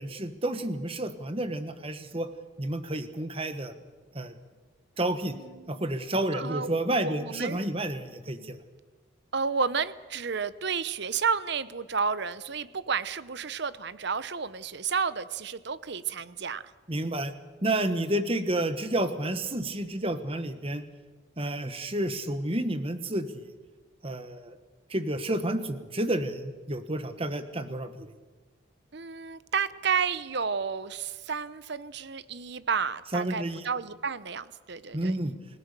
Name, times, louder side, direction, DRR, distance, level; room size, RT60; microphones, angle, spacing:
voice 1, 0.0-2.3 2.6-3.7 4.1-4.3 5.0-5.3 5.7-8.6 16.9-17.3 17.6-20.8 21.4-23.5 24.0-24.6 24.9-28.1 33.1-33.6 34.9-35.3, right 1 dB, 30° right, 10 dB, 1.4 m, -30 dB
voice 2, 5.3-5.8 6.3-6.7 7.0-7.6 8.4-8.5 9.3-16.6 28.9-35.1, right 5 dB, 55° right, 16 dB, 0.8 m, -31 dB
29.0 x 17.5 x 6.8 m, 1.4 s
head